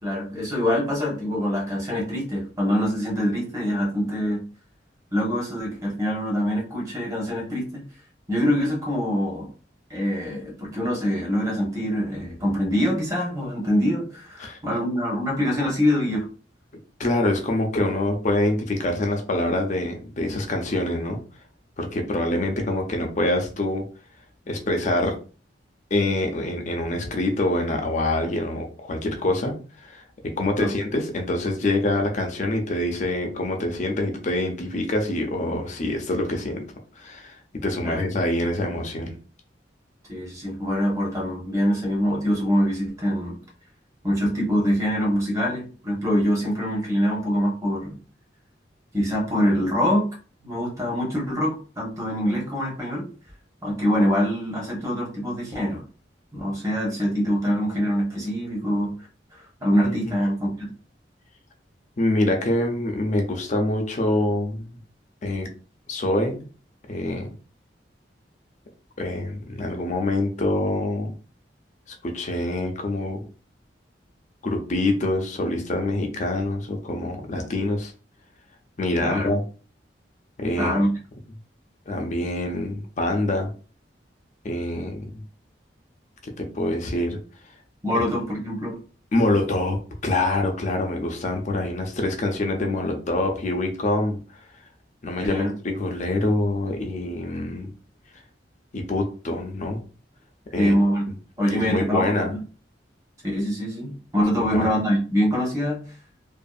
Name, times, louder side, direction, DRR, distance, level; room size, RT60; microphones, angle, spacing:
voice 1, 0.0-4.4 5.1-7.7 8.3-9.5 9.9-16.3 30.6-30.7 37.8-38.1 40.1-43.4 44.0-48.0 48.9-50.1 50.4-53.1 53.6-55.8 56.3-59.0 59.3-60.7 79.0-79.3 80.6-80.9 87.8-88.8 95.2-95.5 100.6-101.0 101.4-102.4 103.2-105.8, equal, 20° right, -3 dB, 1.0 m, -24 dB
voice 2, 17.0-21.2 21.8-23.8 24.5-25.2 25.9-36.6 37.0-39.1 59.8-60.0 62.0-64.8 65.2-65.5 65.9-66.5 66.9-67.3 69.0-71.1 72.0-73.2 74.4-77.9 78.8-79.4 80.4-80.7 81.9-83.5 84.4-85.0 86.2-87.2 87.9-88.0 89.1-89.8 90.0-94.2 95.0-97.7 98.7-99.8 100.5-100.7 101.6-102.3 104.5-104.7, left 1 dB, 45° left, 4 dB, 0.6 m, -25 dB
2.6 x 2.5 x 2.4 m, 0.37 s
head